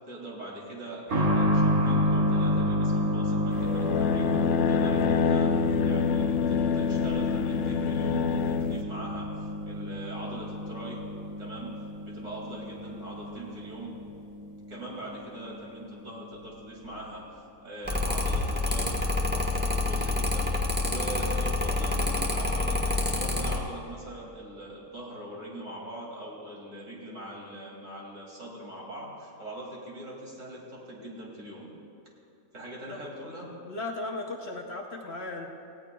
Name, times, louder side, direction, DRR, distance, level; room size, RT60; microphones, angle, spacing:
voice 1, 0.1-4.4 4.7-11.1 11.4-11.8 12.0-13.9 14.7-20.5 20.8-31.7 32.5-33.6, right 1 dB, 60° right, -3 dB, 2.8 m, -41 dB
sound 1, 1.1-15.5 15.8-15.9 16.8-17.0, equal, 80° right, 2.6 m, -30 dB
sound 2, 3.5-8.8, left 7 dB, 80° left, 1.0 m, -26 dB
Mechanical fan, 17.8-23.6, left 2 dB, 10° right, 1.1 m, -27 dB
voice 2, 33.7-35.5, left 2 dB, 50° left, 0 dB, 1.1 m, -36 dB
18.5 x 16.5 x 2.3 m, 2.6 s
omnidirectional pair, 1.5 m